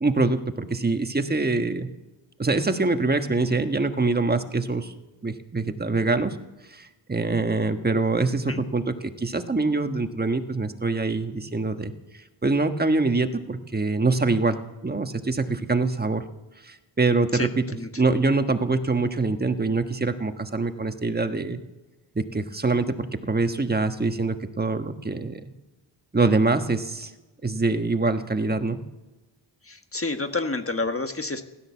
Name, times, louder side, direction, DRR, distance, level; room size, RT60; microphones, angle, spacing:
voice 1, 0.0-1.9 2.4-4.9 5.2-6.4 6.7-11.9 12.4-16.2 16.6-17.6 18.0-21.6 22.1-25.4 26.1-27.1 27.4-28.8, right 3 dB, 20° right, 8 dB, 1.3 m, -24 dB
voice 2, 17.3-17.9 29.6-31.4, left 3 dB, 30° left, 7 dB, 1.4 m, -29 dB
16.0 x 12.5 x 7.2 m, 1.1 s
wide cardioid pair, 80°, 45 cm